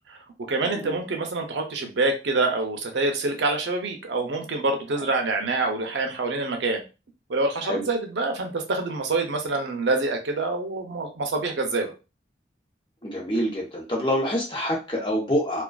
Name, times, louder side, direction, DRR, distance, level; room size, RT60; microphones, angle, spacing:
voice 1, 0.5-6.8 7.3-11.9, right 3 dB, 90° right, 3 dB, 0.5 m, -26 dB
voice 2, 13.0-15.6, equal, 30° left, -2 dB, 0.7 m, -26 dB
2.4 x 2.2 x 2.2 m, 0.30 s
head